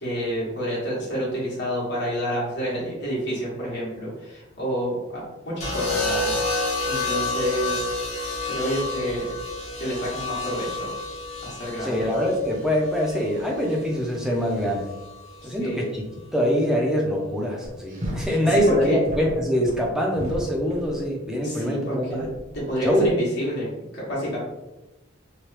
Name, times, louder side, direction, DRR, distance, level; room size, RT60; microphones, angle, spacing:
voice 1, 0.0-6.4 6.9-7.9 8.5-9.3 9.8-10.9 11.4-12.1 15.4-15.8 18.3-19.0 21.4-22.3 22.5-24.4, equal, 55° left, -7 dB, 1.1 m, -29 dB
sound 1, 5.6-13.8 15.0-15.4, left 2 dB, 35° left, 0.7 m, -29 dB
voice 2, 11.8-14.8 15.4-16.0 16.3-22.3 22.8-23.1, equal, 5° right, -2 dB, 0.5 m, -24 dB
sound 2, 17.6-21.0 22.2-23.1, equal, 40° right, 0.7 m, -34 dB
2.9 x 2.2 x 3.2 m, 1.0 s
head